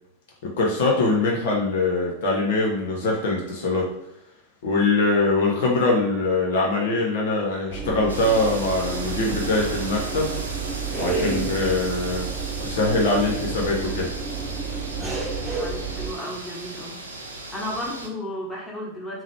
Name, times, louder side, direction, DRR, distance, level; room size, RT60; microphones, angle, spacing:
voice 1, 0.6-3.9 4.6-10.3 11.0-12.3 12.6-14.1, left 2 dB, 55° left, -2 dB, 0.8 m, -23 dB
sound 1, 7.7-16.1, right 4 dB, 10° right, 1.0 m, -30 dB
sound 2, 8.1-18.1, right 2 dB, 75° right, 0.6 m, -36 dB
voice 2, 15.6-17.0 17.3-19.2, equal, 10° left, -5 dB, 1.3 m, -33 dB
3.8 x 3.0 x 3.3 m, 0.84 s
figure-of-eight pair, 90°, 0 cm